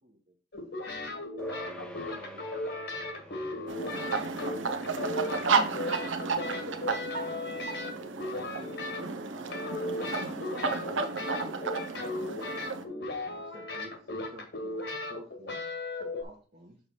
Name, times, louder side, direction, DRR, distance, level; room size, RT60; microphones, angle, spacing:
voice 1, 0.0-0.8 1.6-5.2 6.2-7.9 8.5-12.4 13.2-15.6 16.0-16.8, right 1 dB, 40° right, -3 dB, 1.2 m, -52 dB
sound 1, 0.5-9.2 9.5-16.2, left 2 dB, 55° left, 1.4 m, -36 dB
sound 2, 1.4-11.1, equal, 5° left, 0.7 m, -52 dB
sound 3, 3.7-12.8, right 4 dB, 75° right, 0.8 m, -32 dB
6.8 x 3.2 x 5.6 m, 0.38 s
head